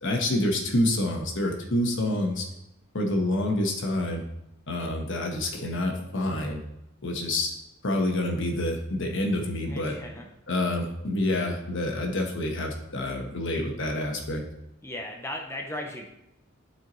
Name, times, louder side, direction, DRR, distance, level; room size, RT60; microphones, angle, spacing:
voice 1, 0.0-2.5 2.9-4.2 4.7-6.6 7.0-7.5 7.8-10.0 10.5-14.4, left 1 dB, 65° left, 2 dB, 1.2 m, -27 dB
voice 2, 9.7-10.3 14.8-16.1, left 1 dB, 10° left, 1 dB, 0.6 m, -36 dB
11.5 x 4.6 x 3.0 m, 0.85 s
head